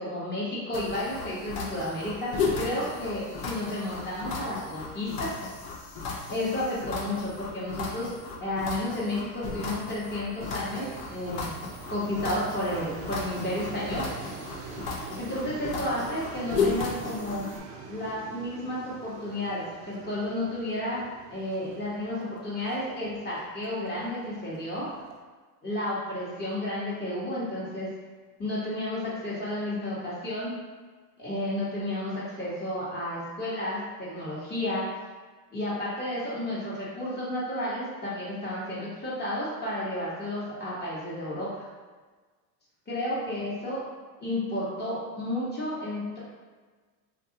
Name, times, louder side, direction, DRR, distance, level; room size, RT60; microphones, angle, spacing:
voice 1, 0.0-5.3 6.3-8.1 8.4-11.5 11.9-14.1 15.2-17.5 17.9-24.9 25.6-27.9 28.4-30.6 31.2-34.8 35.5-41.6 42.9-43.8 44.2-46.2, left 1 dB, 20° left, -8 dB, 1.2 m, -32 dB
sound 1, 0.7-17.6, left 4 dB, 50° left, 0.7 m, -35 dB
sound 2, 10.6-25.2, right 5 dB, 65° right, 0.6 m, -44 dB
2.5 x 2.4 x 2.8 m, 1.4 s
hypercardioid pair, 90°, 47 cm